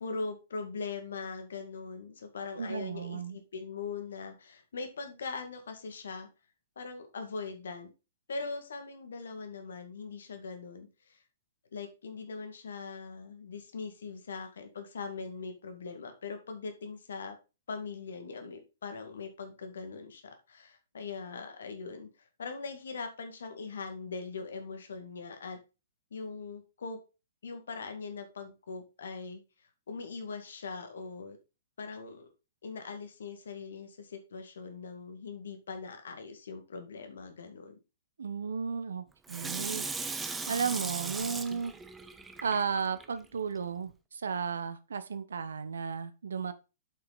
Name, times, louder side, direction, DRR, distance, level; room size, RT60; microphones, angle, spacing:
voice 1, 0.0-6.3 6.8-7.9 8.3-11.2 11.7-17.4 17.7-22.1 22.4-25.6 26.1-27.0 27.4-29.4 29.9-31.4 31.8-32.3 32.6-37.8, left 4 dB, 65° left, 7 dB, 1.9 m, -41 dB
voice 2, 2.6-3.4 38.2-39.9 40.5-41.7 42.4-46.5, right 6 dB, 65° right, 13 dB, 0.9 m, -34 dB
Water tap faucet / Sink (filling or washing), 39.3-43.1 43.6-43.7, right 4 dB, 10° right, 0.8 m, -38 dB
7.7 x 5.9 x 4.0 m, 0.29 s
figure-of-eight pair, 115°, 0 cm